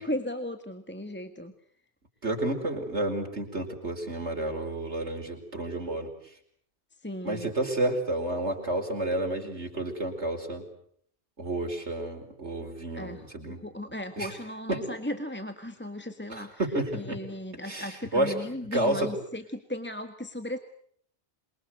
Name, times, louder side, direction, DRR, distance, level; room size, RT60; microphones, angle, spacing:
voice 1, 0.0-1.5 7.0-7.5 12.9-13.3 13.6-16.6 16.9-20.6, left 1 dB, 10° left, 7 dB, 1.6 m, -36 dB
voice 2, 2.2-6.1 7.2-10.6 11.4-13.6 14.2-14.3 14.7-14.9 16.3-17.2 17.7-18.4 18.7-19.1, right 1 dB, 85° right, 2 dB, 5.1 m, -30 dB
27.5 x 23.5 x 8.0 m, 0.64 s
omnidirectional pair, 1.1 m